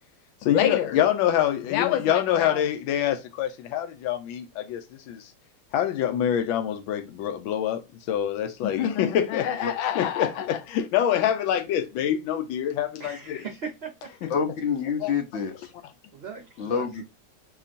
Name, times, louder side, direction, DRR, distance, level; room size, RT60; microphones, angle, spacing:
voice 1, 0.4-5.3 5.7-13.4 14.2-14.3 15.0-15.1, left 10 dB, 90° left, 1.4 m, -25 dB
voice 2, 13.0-14.3 16.1-16.9, right 5 dB, 55° right, 0.7 m, -39 dB
voice 3, 14.3-15.7 16.6-17.0, left 6 dB, 70° left, 0.6 m, -27 dB
6.8 x 2.9 x 2.5 m
omnidirectional pair, 2.1 m